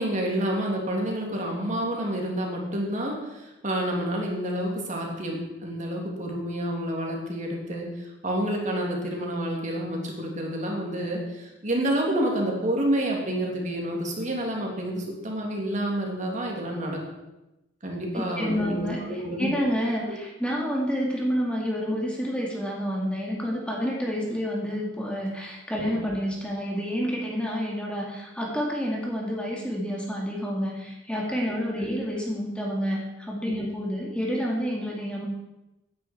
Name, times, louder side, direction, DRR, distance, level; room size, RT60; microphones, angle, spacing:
voice 1, 0.0-17.0 17.8-19.5 20.1-20.2 25.7-26.1 33.6-33.7, right 1 dB, 40° right, -1 dB, 2.9 m, -29 dB
voice 2, 18.1-35.3, equal, 5° left, -2 dB, 2.2 m, -29 dB
16.5 x 9.9 x 4.6 m, 0.97 s
head